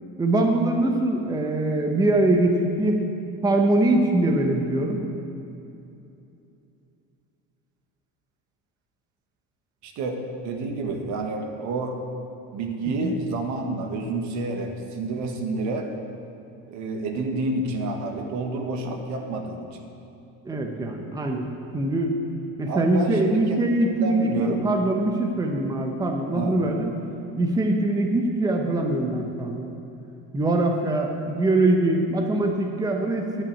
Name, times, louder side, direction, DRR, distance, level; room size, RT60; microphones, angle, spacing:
voice 1, 0.2-3.0 3.4-5.0 13.0-13.1 20.4-22.2 22.6-26.9 27.4-29.7 30.3-33.4, right 2 dB, 10° right, 3 dB, 0.9 m, -23 dB
voice 2, 9.8-12.0 12.5-15.9 16.7-19.7 22.7-24.6 26.3-26.6, right 3 dB, 60° right, 4 dB, 1.5 m, -29 dB
11.5 x 6.1 x 8.4 m, 2.8 s
cardioid pair, 130°, 32 cm